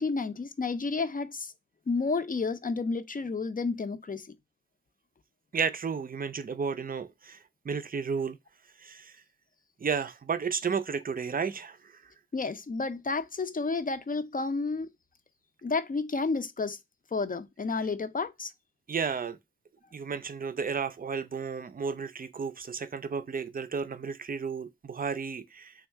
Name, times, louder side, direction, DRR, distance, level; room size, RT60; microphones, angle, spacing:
voice 1, 0.0-1.5 1.9-4.3 12.3-14.9 15.6-16.8 17.1-18.5, left 4 dB, 40° left, 0.5 m, -31 dB
voice 2, 5.5-7.4 7.6-8.4 8.8-9.2 9.8-11.9 18.9-19.4 19.9-25.7, right 5 dB, 45° right, 0.4 m, -32 dB
3.4 x 2.3 x 4.4 m
cardioid pair, 45°, 21 cm